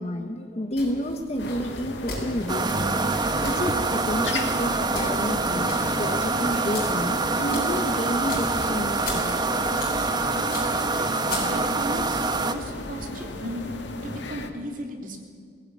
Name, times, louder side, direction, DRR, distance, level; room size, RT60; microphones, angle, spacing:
voice 1, 0.0-3.0 3.4-9.4, equal, 35° left, 4 dB, 1.3 m, -30 dB
sound 1, 0.7-11.9, left 2 dB, 55° left, 6.3 m, -39 dB
sound 2, 1.4-14.5, left 2 dB, 85° left, 1.8 m, -36 dB
sound 3, 2.5-12.5, right 3 dB, 25° right, 1.1 m, -25 dB
voice 2, 11.0-13.6 14.0-15.2, equal, 50° right, 2 dB, 3.2 m, -36 dB
21.0 x 16.0 x 9.5 m, 2.1 s
head